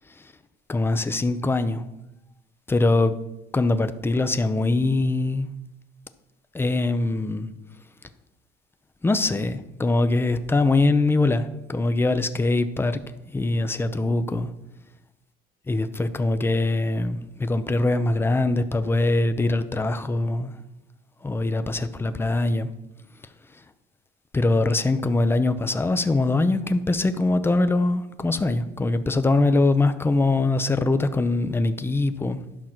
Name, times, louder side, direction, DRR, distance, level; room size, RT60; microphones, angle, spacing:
voice 1, 0.7-1.8 2.7-3.1 3.5-5.5 6.5-7.5 9.0-13.0 13.3-14.5 15.7-20.5 21.2-22.7 24.3-32.4, left 2 dB, 10° left, 0.6 m, -22 dB
11.5 x 6.0 x 5.9 m
cardioid pair, 135°, 21 cm